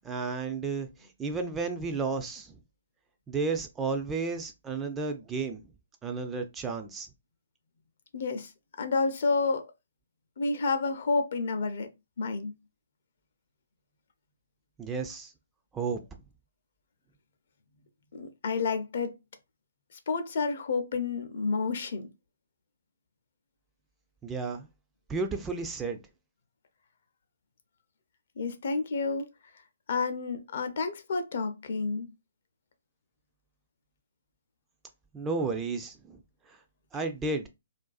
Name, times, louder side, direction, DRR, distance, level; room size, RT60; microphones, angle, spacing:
voice 1, 0.0-2.6 3.3-5.6 6.0-7.1 14.8-15.3 15.7-16.0 24.2-24.7 25.1-26.0 35.1-36.2 36.5-36.6 36.9-37.5, right 4 dB, 15° right, 0.3 m, -32 dB
voice 2, 8.1-8.5 8.8-9.7 10.4-11.9 12.2-12.5 18.1-19.1 20.1-22.1 28.4-29.3 29.9-32.1, left 4 dB, 55° left, 0.5 m, -29 dB
2.4 x 2.2 x 2.3 m
figure-of-eight pair, 130°, 0 cm